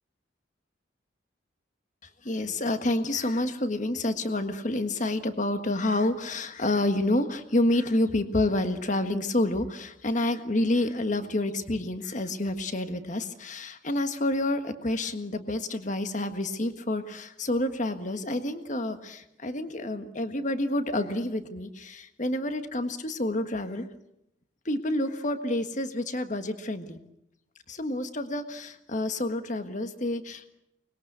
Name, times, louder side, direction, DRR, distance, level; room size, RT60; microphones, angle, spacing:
voice 1, 2.0-23.9 24.6-27.0 27.7-30.5, left 1 dB, 40° left, 9 dB, 1.6 m, -28 dB
24.0 x 21.0 x 8.1 m, 0.82 s
head